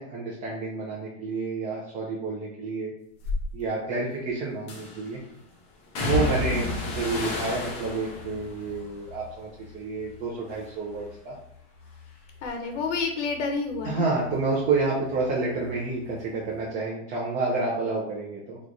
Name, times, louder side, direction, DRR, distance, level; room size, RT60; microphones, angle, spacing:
voice 1, 0.0-2.9 3.5-5.2 6.0-11.3 13.8-18.6, right 3 dB, 20° right, -5 dB, 0.6 m, -29 dB
sound 1, 3.2-3.4 4.7-5.1 5.9-10.2 10.5-11.1 11.5-14.8 15.1-16.2 16.5-16.6, left 2 dB, 20° left, 0.3 m, -33 dB
voice 2, 6.4-6.8 12.4-14.1, left 4 dB, 75° left, 4 dB, 0.8 m, -30 dB
3.1 x 2.5 x 3.9 m, 0.74 s
supercardioid pair, 155°, 36 cm